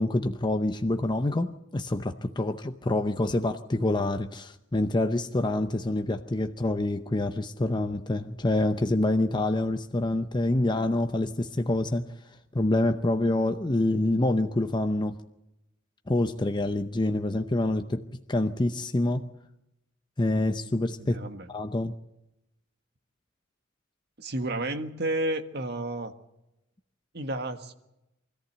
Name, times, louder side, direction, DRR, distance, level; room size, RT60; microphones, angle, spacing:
voice 1, 0.0-12.1 12.5-15.2 16.1-19.3 20.2-21.2 21.5-21.9, left 1 dB, 25° left, 0.7 m, -26 dB
voice 2, 21.0-21.5 24.2-26.1 27.1-27.7, right 1 dB, 55° right, 1.5 m, -31 dB
24.0 x 14.5 x 8.0 m
head